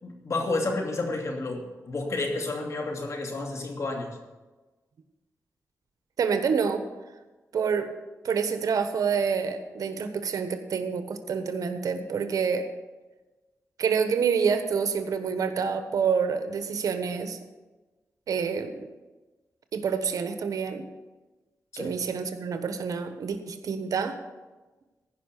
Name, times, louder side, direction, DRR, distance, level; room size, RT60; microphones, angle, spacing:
voice 1, 0.0-4.1 21.7-22.0, left 2 dB, 55° left, 2 dB, 2.7 m, -31 dB
voice 2, 6.2-6.8 7.5-7.9 8.2-12.7 13.8-17.4 18.3-18.9 19.7-20.8 21.8-24.1, right 6 dB, 80° right, 8 dB, 1.2 m, -27 dB
15.5 x 5.8 x 8.2 m, 1.2 s
cardioid pair, 75°, 6 cm